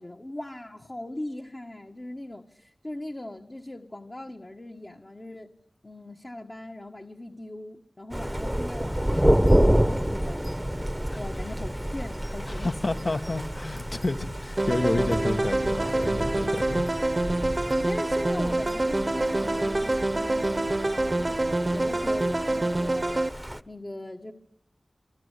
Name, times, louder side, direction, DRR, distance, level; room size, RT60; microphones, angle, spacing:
voice 1, 0.0-5.5 5.8-13.1 17.7-23.3 23.6-24.3, left 1 dB, 30° left, 1.5 m, -39 dB
Thunder, 8.1-23.6, equal, 5° right, 1.1 m, -29 dB
voice 2, 12.5-16.8, left 2 dB, 55° left, 1.6 m, -30 dB
sound 1, 14.6-23.3, right 2 dB, 35° right, 1.0 m, -26 dB
27.5 x 24.0 x 8.3 m
wide cardioid pair, 70°, 0 cm